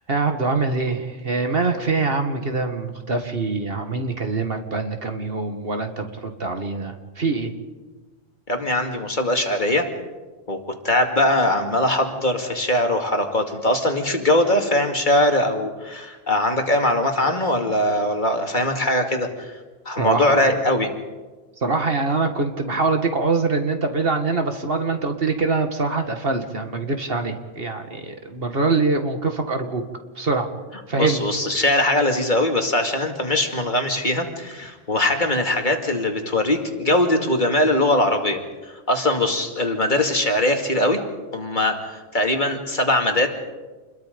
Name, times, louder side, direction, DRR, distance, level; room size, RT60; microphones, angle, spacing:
voice 1, 0.1-7.5 20.0-20.4 21.6-29.8 30.2-30.5 30.9-31.2, right 3 dB, 55° right, 6 dB, 2.0 m, -24 dB
voice 2, 8.5-9.9 10.5-10.6 10.8-19.5 19.9-20.9 30.9-38.4 38.9-41.0 41.3-43.3, left 1 dB, 40° left, 4 dB, 2.4 m, -21 dB
28.5 x 22.0 x 5.2 m, 1.3 s
omnidirectional pair, 1.2 m